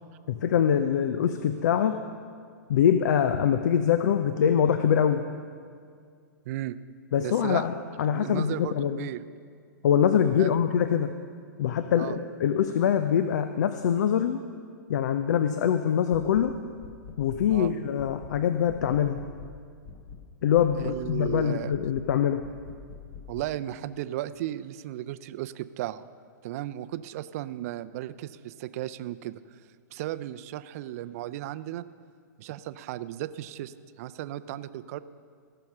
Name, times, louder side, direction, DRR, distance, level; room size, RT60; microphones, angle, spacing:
voice 1, 0.3-2.0 2.7-5.2 7.1-9.1 9.8-11.1 11.6-14.4 14.9-16.6 17.2-19.2 20.4-22.4, left 8 dB, 65° left, 9 dB, 0.6 m, -24 dB
voice 2, 6.5-6.8 7.2-7.7 8.1-9.2 10.4-10.6 12.0-12.2 17.5-17.7 20.8-21.7 23.3-26.1 26.4-29.6 29.9-31.8 32.4-35.0, right 13 dB, 50° right, 14 dB, 0.5 m, -35 dB
sound 1, 16.1-16.5 16.8-17.7 18.0-18.4 18.7-19.6 19.9-20.3 20.6-21.4 21.7-22.1 22.4-23.5, left 6 dB, 40° left, 1.1 m, -45 dB
17.0 x 6.8 x 6.1 m, 2.2 s
hypercardioid pair, 115°, 10 cm